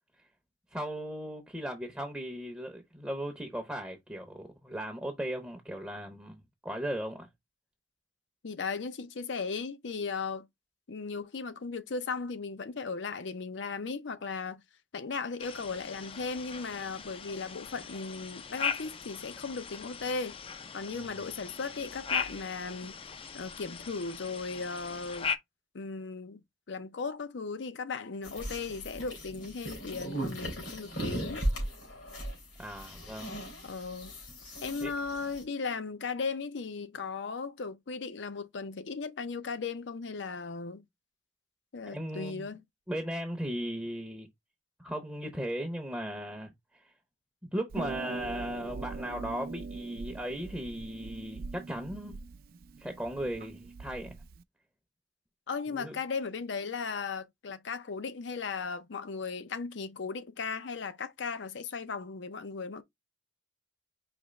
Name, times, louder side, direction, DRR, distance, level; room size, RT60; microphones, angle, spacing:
voice 1, 0.7-7.3 20.9-21.1 32.6-33.4 34.8-34.9 41.9-42.5 42.9-44.3 44.8-46.9 47.4-52.2 52.8-54.2 55.7-56.0, equal, 5° right, 0.6 m, -37 dB
voice 2, 8.4-10.5 10.9-14.6 14.9-20.4 20.7-23.0 23.3-25.3 25.7-26.4 26.7-31.5 33.6-34.1 34.6-40.8 41.7-42.6 55.5-62.8, left 4 dB, 70° left, 0.6 m, -37 dB
sound 1, 15.4-25.4, left 6 dB, 30° left, 0.4 m, -39 dB
sound 2, 28.2-35.4, equal, 90° left, 3.0 m, -37 dB
Harp, 47.7-54.4, right 4 dB, 50° right, 0.4 m, -42 dB
5.0 x 2.9 x 3.1 m
head